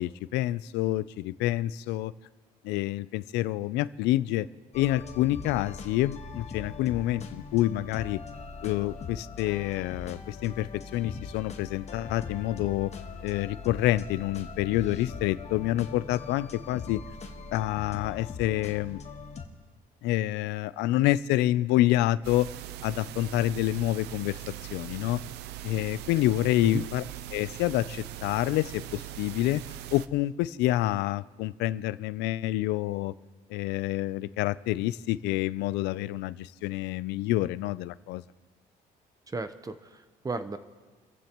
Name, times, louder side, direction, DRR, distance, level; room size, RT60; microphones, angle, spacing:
voice 1, 0.0-2.1 2.6-4.5 4.7-8.2 8.6-12.9 13.2-17.0 17.5-19.0 20.0-22.5 22.8-24.4 24.7-25.2 25.6-27.0 27.3-29.6 29.9-33.1 33.5-38.2, left 15 dB, 90° left, 17 dB, 0.5 m, -27 dB
sound 1, 4.7-19.4, left 5 dB, 40° left, 1.5 m, -41 dB
sound 2, 22.2-30.1, right 12 dB, 85° right, 0.6 m, -41 dB
voice 2, 39.3-40.6, right 3 dB, 20° right, 11 dB, 0.8 m, -35 dB
29.5 x 15.0 x 3.0 m, 1.4 s
cardioid pair, 110°, 17 cm